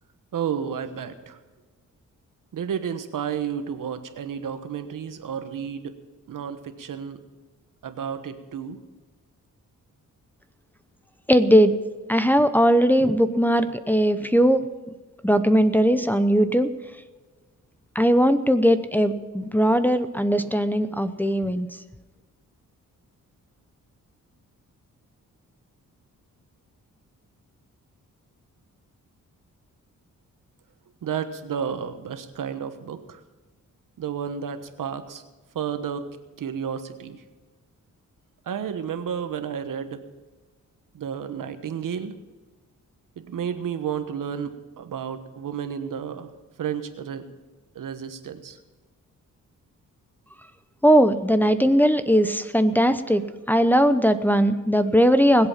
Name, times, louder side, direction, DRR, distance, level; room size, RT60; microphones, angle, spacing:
voice 1, 0.3-1.4 2.5-5.9 6.3-7.2 7.8-8.8 31.0-33.2 34.0-35.2 35.5-36.1 36.4-37.2 38.5-40.0 40.9-42.1 43.2-46.3 46.6-47.2 47.7-48.6, right 8 dB, 75° right, 9 dB, 1.2 m, -31 dB
voice 2, 11.3-11.8 12.1-14.6 15.2-16.7 17.9-21.7 50.8-53.2 53.5-55.5, equal, 5° left, 8 dB, 0.8 m, -19 dB
20.5 x 8.0 x 5.8 m, 1.3 s
cardioid pair, 85°, 32 cm